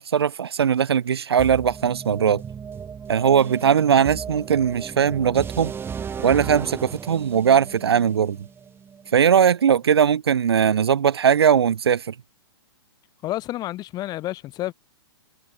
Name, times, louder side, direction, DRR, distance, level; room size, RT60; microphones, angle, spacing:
voice 1, 0.0-2.4 3.1-5.7 6.2-8.4 9.1-12.1, right 8 dB, 70° right, 1.4 m, -19 dB
sound 1, 1.4-9.3, right 7 dB, 15° right, 5.6 m, -35 dB
voice 2, 13.2-14.7, left 15 dB, 30° left, 3.1 m, -30 dB
figure-of-eight pair, 110°, 14 cm